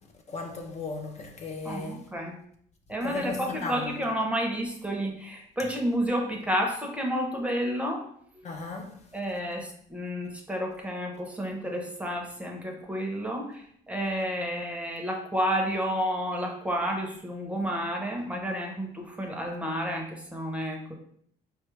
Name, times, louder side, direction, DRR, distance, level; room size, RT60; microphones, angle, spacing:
voice 1, 0.3-2.0 3.0-3.9 8.4-8.9, left 3 dB, 40° left, 0.5 m, -35 dB
voice 2, 1.6-2.4 2.9-8.0 8.3-8.4 9.1-20.9, equal, 5° right, 0.7 m, -30 dB
4.3 x 2.3 x 3.1 m
cardioid pair, 110°, 17 cm